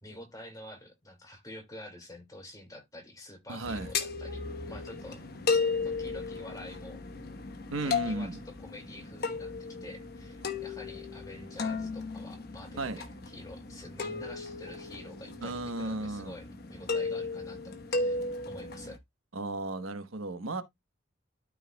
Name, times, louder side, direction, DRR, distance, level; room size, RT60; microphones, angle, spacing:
voice 1, 0.0-5.3 5.8-7.0 7.8-18.2 18.5-19.0, left 1 dB, 20° left, 2.2 m, -48 dB
voice 2, 3.5-3.9 7.7-8.4 12.8-13.0 15.4-16.3 19.3-20.6, right 2 dB, 85° right, 1.0 m, -34 dB
sound 1, 3.6-19.0, left 4 dB, 50° left, 1.1 m, -35 dB
13.0 x 4.8 x 2.2 m
head